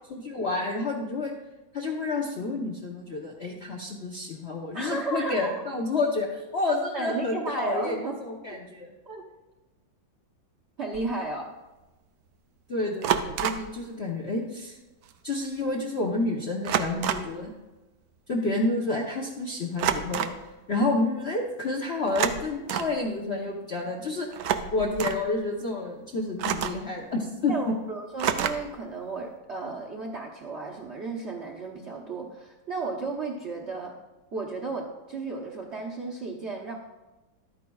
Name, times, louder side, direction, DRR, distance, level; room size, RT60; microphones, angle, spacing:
voice 1, 0.1-1.3 1.7-8.9 12.7-14.8 15.2-17.5 18.3-20.3 20.7-24.3 24.7-27.7, left 2 dB, 55° left, -2 dB, 0.7 m, -29 dB
voice 2, 4.7-5.6 6.9-8.2 9.1-9.2 10.8-11.5 27.5-33.9 34.3-36.7, right 3 dB, 55° right, -2 dB, 0.8 m, -34 dB
sound 1, 10.9-11.1 13.0-13.7 15.1-15.2 15.4-15.7 16.6-17.4 19.8-20.4 22.0-23.0 24.3-25.2 26.4-26.9 28.2-28.8, right 9 dB, 90° right, 0.8 m, -28 dB
12.0 x 9.4 x 2.3 m, 1.1 s
omnidirectional pair, 2.2 m